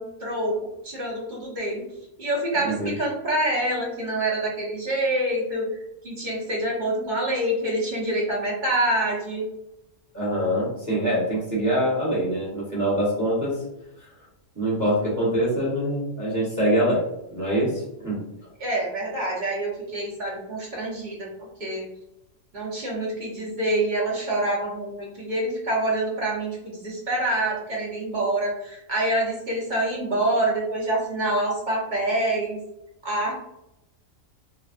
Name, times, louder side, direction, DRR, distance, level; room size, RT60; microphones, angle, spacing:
voice 1, 0.0-1.8 2.2-5.7 6.0-9.5 18.6-21.3 21.6-21.9 22.5-32.6 33.0-33.3, right 1 dB, 40° right, -4 dB, 1.1 m, -26 dB
voice 2, 2.6-2.9 10.1-13.6 14.5-17.0 17.3-18.2, equal, 15° right, -7 dB, 1.0 m, -24 dB
3.3 x 2.4 x 2.5 m, 0.85 s
omnidirectional pair, 1.4 m